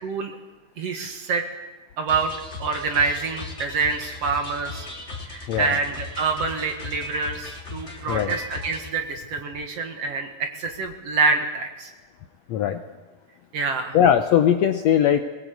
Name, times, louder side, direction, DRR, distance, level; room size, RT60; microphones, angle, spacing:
voice 1, 0.0-0.3 0.8-1.5 2.0-2.3 2.6-4.9 5.3-11.9 13.5-14.0, right 4 dB, 55° right, 5 dB, 2.4 m, -26 dB
sound 1, 2.1-8.9, left 3 dB, 20° left, 2.9 m, -37 dB
voice 2, 12.5-12.8 13.9-15.2, left 9 dB, 70° left, 7 dB, 1.7 m, -19 dB
21.0 x 20.5 x 8.3 m, 1.2 s
omnidirectional pair, 3.9 m